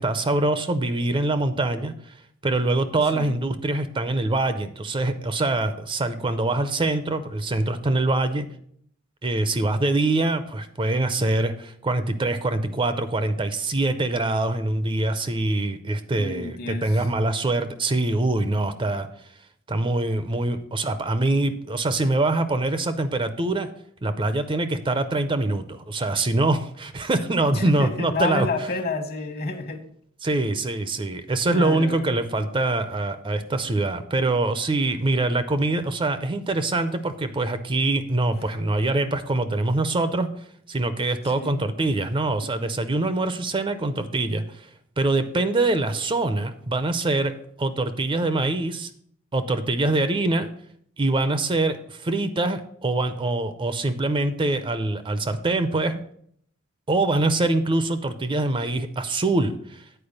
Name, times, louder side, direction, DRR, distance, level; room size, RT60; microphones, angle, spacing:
voice 1, 0.0-2.2 2.4-8.5 9.2-19.1 19.7-23.7 24.0-28.5 30.2-40.3 40.7-44.7 45.0-47.3 47.6-48.9 49.3-50.5 51.0-56.0 56.9-59.8, right 2 dB, 25° right, 11 dB, 0.5 m, -24 dB
voice 2, 16.1-17.0 27.5-29.8 31.5-32.1 41.3-41.7, left 3 dB, 50° left, 6 dB, 1.2 m, -30 dB
8.8 x 4.5 x 6.5 m, 0.64 s
head